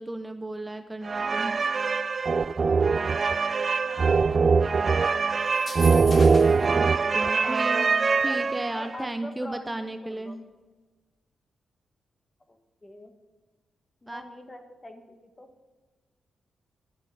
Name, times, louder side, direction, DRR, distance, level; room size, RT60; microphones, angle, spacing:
voice 1, 0.0-1.6 6.7-7.9 8.2-10.4 14.1-14.2, right 1 dB, 15° right, 8 dB, 0.7 m, -34 dB
sound 1, 1.0-8.9, right 4 dB, 45° right, 0.3 m, -23 dB
voice 2, 3.7-5.5 5.9-6.4 7.2-10.4 12.5-13.1 14.0-15.7, left 1 dB, 25° left, 7 dB, 1.5 m, -44 dB
sound 2, 5.5-6.7, left 3 dB, 45° left, 1.5 m, -38 dB
10.5 x 7.5 x 7.0 m, 1.3 s
cardioid pair, 60°, 0 cm